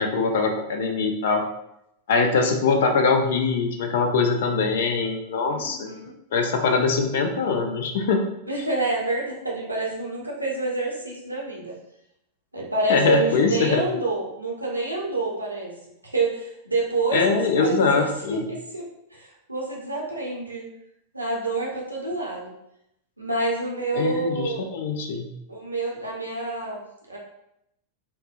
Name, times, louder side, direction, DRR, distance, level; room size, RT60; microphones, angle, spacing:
voice 1, 0.0-1.4 2.1-5.9 6.3-8.2 12.9-13.8 17.1-18.4 24.0-25.3, left 4 dB, 55° left, 5 dB, 0.4 m, -22 dB
voice 2, 5.5-6.1 8.4-11.7 12.5-15.7 16.0-20.7 21.1-22.5 23.2-24.6 25.5-27.2, right 2 dB, 85° right, -3 dB, 0.6 m, -28 dB
4.2 x 2.0 x 2.4 m, 0.80 s
figure-of-eight pair, 90°, 0 cm